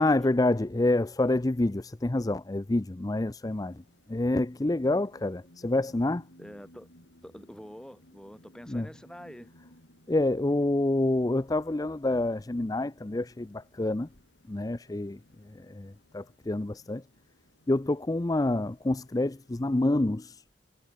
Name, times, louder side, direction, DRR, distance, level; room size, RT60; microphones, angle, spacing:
voice 1, 0.0-3.8 4.1-6.2 8.7-8.9 10.1-14.1 14.5-15.2 15.6-17.0 17.7-20.4, left 2 dB, 20° left, 0.5 m, -27 dB
sound 1, 3.5-19.9, left 1 dB, 90° left, 6.1 m, -60 dB
voice 2, 6.4-6.9 7.2-9.5, equal, 5° left, 3.3 m, -46 dB
head